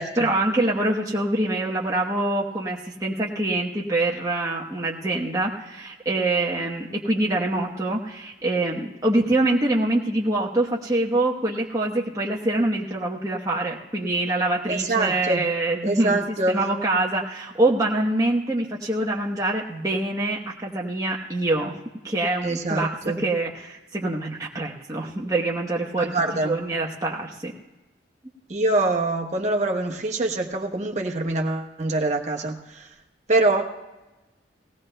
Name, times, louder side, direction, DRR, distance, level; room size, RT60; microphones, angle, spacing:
voice 1, 0.0-16.2 16.5-21.8 22.0-27.5, right 2 dB, 20° right, -2 dB, 1.0 m, -25 dB
voice 2, 14.7-15.4 15.8-16.6 22.4-23.2 26.0-26.6 28.5-32.9 33.3-33.6, right 2 dB, 40° right, 1 dB, 1.2 m, -24 dB
19.0 x 17.0 x 2.2 m, 1.0 s
head